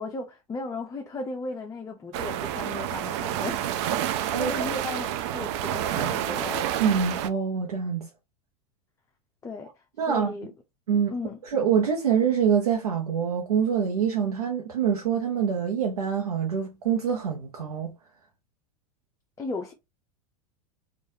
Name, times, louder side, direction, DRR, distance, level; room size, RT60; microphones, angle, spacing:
voice 1, 0.0-3.7 4.0-6.8 9.4-9.7 10.1-10.5 11.1-11.4 19.4-19.7, left 3 dB, 15° left, 0.6 m, -36 dB
sound 1, 2.1-7.3, right 11 dB, 50° right, 0.5 m, -29 dB
voice 2, 4.3-4.7 6.8-8.0 10.0-10.3 10.9-11.1 11.4-17.9, right 7 dB, 75° right, 0.9 m, -25 dB
4.6 x 2.5 x 2.7 m
figure-of-eight pair, 90°, 19 cm